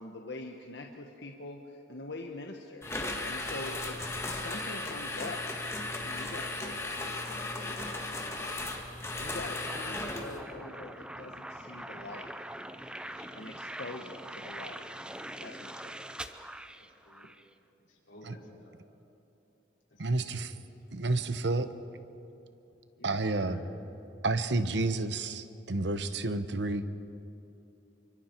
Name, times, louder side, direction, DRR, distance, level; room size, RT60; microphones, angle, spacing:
voice 1, 0.0-2.8 3.2-5.4 6.0-8.2 9.2-12.3 13.3-14.8 15.4-16.0, left 2 dB, 65° left, 2 dB, 1.2 m, -44 dB
sound 1, 2.8-10.4, left 2 dB, 15° left, 1.9 m, -36 dB
voice 2, 9.0-9.3 13.0-13.6 17.1-17.3 18.1-18.8 20.1-20.3 23.0-23.7, left 1 dB, 90° left, -4 dB, 5.3 m, -52 dB
sound 2, 9.7-17.5, right 1 dB, 5° right, 0.6 m, -43 dB
voice 3, 20.0-20.5 20.9-21.7 23.0-23.6 24.2-26.8, right 2 dB, 70° right, 11 dB, 1.0 m, -30 dB
28.0 x 24.5 x 4.6 m, 2.9 s
head